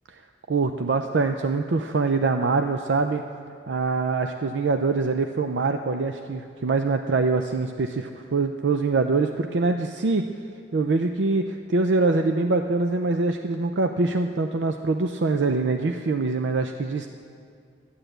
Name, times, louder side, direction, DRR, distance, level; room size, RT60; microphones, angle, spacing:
voice 1, 0.5-3.2 3.7-10.2 10.7-17.1, right 3 dB, 85° right, 6 dB, 0.5 m, -24 dB
12.0 x 10.0 x 7.9 m, 2.3 s
head